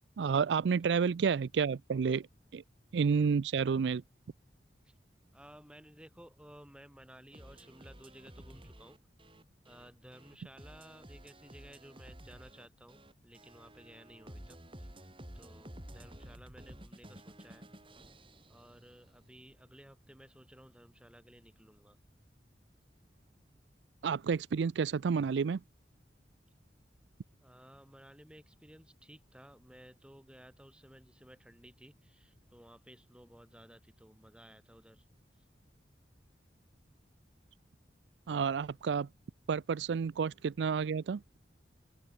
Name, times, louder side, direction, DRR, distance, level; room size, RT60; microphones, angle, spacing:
voice 1, 0.2-2.3 2.5-2.6 2.9-4.0 24.0-25.6 38.3-39.1 39.5-41.2, right 6 dB, 85° right, 0.4 m, -30 dB
voice 2, 5.3-9.0 9.6-15.1 15.3-17.7 18.5-22.0 27.4-35.1, equal, 5° right, 4.0 m, -56 dB
sound 1, 7.3-19.3, right 1 dB, 30° right, 6.0 m, -52 dB
open air
head